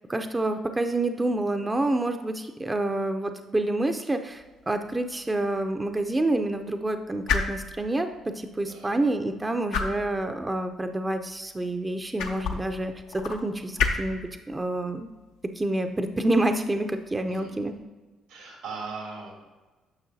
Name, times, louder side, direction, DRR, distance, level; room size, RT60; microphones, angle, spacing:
voice 1, 0.1-8.1 8.4-15.1 15.6-17.7, right 2 dB, 20° right, 6 dB, 0.6 m, -28 dB
sound 1, 4.3-17.8, left 5 dB, 80° left, 0.7 m, -35 dB
voice 2, 17.2-17.6 18.3-19.3, right 4 dB, 85° right, -1 dB, 2.5 m, -39 dB
9.8 x 6.1 x 2.7 m, 1.2 s
hypercardioid pair, 55°, 0 cm